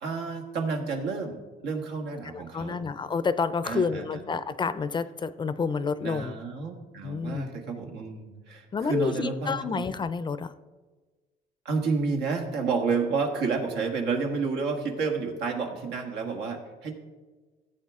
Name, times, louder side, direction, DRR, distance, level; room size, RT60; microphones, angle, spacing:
voice 1, 0.0-2.8 3.6-4.2 6.0-9.8 11.6-16.9, right 4 dB, 85° right, 3 dB, 1.7 m, -30 dB
voice 2, 2.1-6.3 7.0-7.5 8.7-10.5, left 5 dB, 25° left, 14 dB, 0.5 m, -29 dB
14.5 x 8.3 x 3.6 m, 1.3 s
cardioid pair, 110°, 17 cm